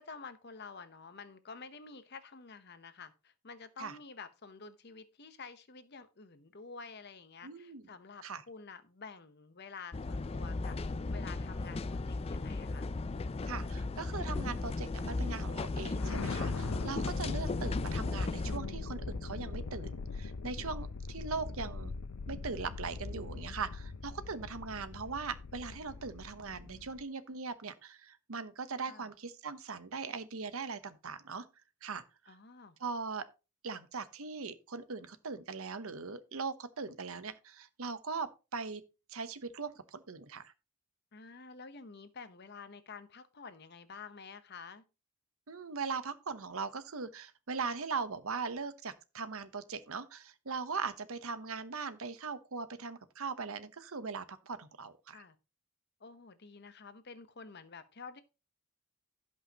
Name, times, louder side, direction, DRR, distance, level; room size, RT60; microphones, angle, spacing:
voice 1, 0.0-10.8 11.1-11.8 12.1-12.9 28.9-29.1 32.3-32.8 41.1-44.8 55.1-55.4 56.0-58.2, left 5 dB, 50° left, 0.9 m, -49 dB
voice 2, 7.4-7.9 8.2-8.4 13.4-21.9 22.3-31.5 31.8-32.4 32.8-33.3 33.6-38.8 39.1-40.5 45.5-55.2, right 4 dB, 70° right, 0.9 m, -40 dB
sound 1, 9.9-18.6, left 3 dB, 25° left, 0.3 m, -36 dB
sound 2, 15.9-27.0, left 3 dB, 70° left, 0.7 m, -41 dB
16.5 x 5.5 x 2.9 m
head